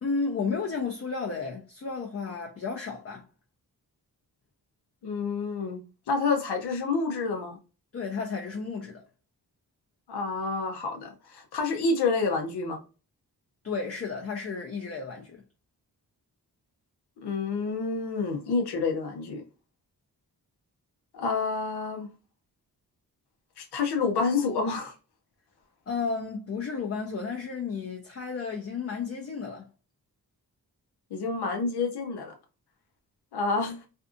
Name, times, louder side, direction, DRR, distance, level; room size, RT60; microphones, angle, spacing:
voice 1, 0.0-3.2 7.9-9.0 13.6-15.4 25.9-29.6, left 5 dB, 40° left, 0.6 m, -32 dB
voice 2, 5.0-5.8 6.1-7.6 10.1-12.8 17.2-19.4 21.1-22.1 23.6-24.9 31.1-32.3 33.3-33.8, left 4 dB, 85° left, 0.7 m, -28 dB
2.6 x 2.4 x 2.4 m
cardioid pair, 60°, 38 cm